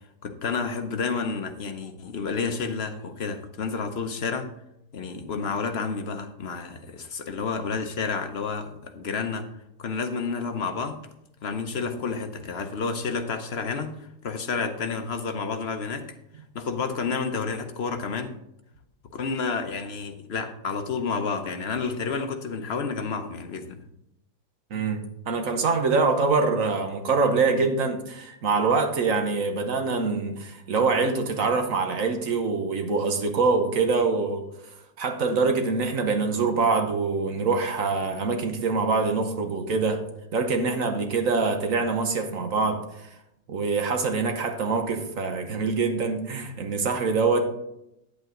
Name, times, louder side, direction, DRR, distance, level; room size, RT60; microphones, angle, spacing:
voice 1, 0.2-4.5 4.9-9.5 9.8-11.0 11.4-13.9 14.2-16.1 16.5-18.4 19.1-23.8, left 5 dB, 50° left, 1.0 m, -30 dB
voice 2, 24.7-34.4 35.0-40.0 40.3-43.1 43.5-47.5, right 4 dB, 55° right, 1.4 m, -24 dB
9.5 x 8.3 x 3.8 m
omnidirectional pair, 1.7 m